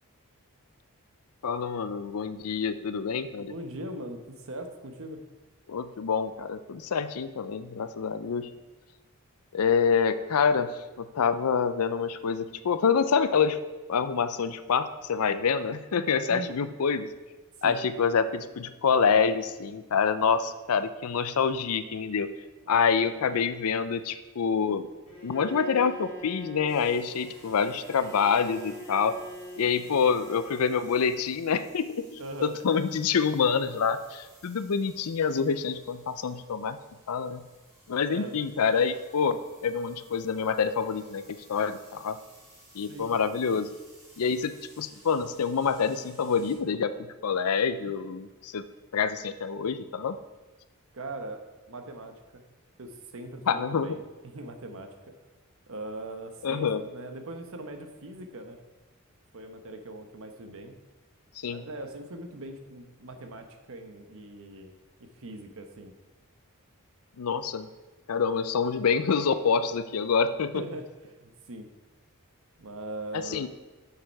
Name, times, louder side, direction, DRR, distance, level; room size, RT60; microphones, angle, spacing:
voice 1, 1.4-3.5 5.7-8.5 9.5-13.6 13.9-17.1 17.6-22.3 22.7-24.9 25.2-29.2 29.6-36.8 37.1-37.5 37.9-42.2 42.7-43.7 44.2-48.6 48.9-50.2 53.5-54.0 56.4-56.8 61.4-61.7 67.2-67.7 68.1-70.6 73.1-73.5, left 6 dB, 75° left, 12 dB, 0.5 m, -27 dB
voice 2, 3.5-5.2 16.3-16.7 17.6-17.8 22.7-23.3 32.2-32.5 38.0-38.4 42.9-43.1 50.9-52.4 52.8-55.1 55.7-58.6 59.3-60.8 61.5-64.7 65.0-65.9 70.5-70.8 71.2-71.7 72.6-73.4, right 1 dB, 65° right, 6 dB, 1.0 m, -41 dB
Bowed string instrument, 25.1-31.3, equal, 25° left, 2.2 m, -43 dB
sound 1, 26.7-46.5, right 1 dB, 15° right, 2.4 m, -57 dB
7.6 x 6.7 x 4.6 m, 1.2 s
head